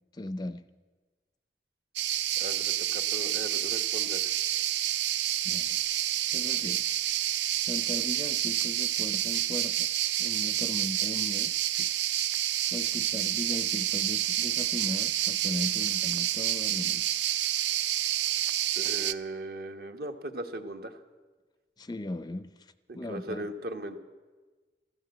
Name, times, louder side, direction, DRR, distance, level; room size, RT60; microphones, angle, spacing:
voice 1, 0.1-0.6 5.4-5.8 6.3-7.0 7.7-9.9 10.2-11.9 12.7-17.2 21.8-23.5, left 1 dB, 25° left, 13 dB, 0.4 m, -38 dB
sound 1, 2.0-19.1, right 12 dB, 80° right, 0.5 m, -29 dB
voice 2, 2.4-4.3 18.8-21.0 22.9-24.0, right 1 dB, 60° right, 7 dB, 1.2 m, -38 dB
14.0 x 13.0 x 7.7 m, 1.3 s
head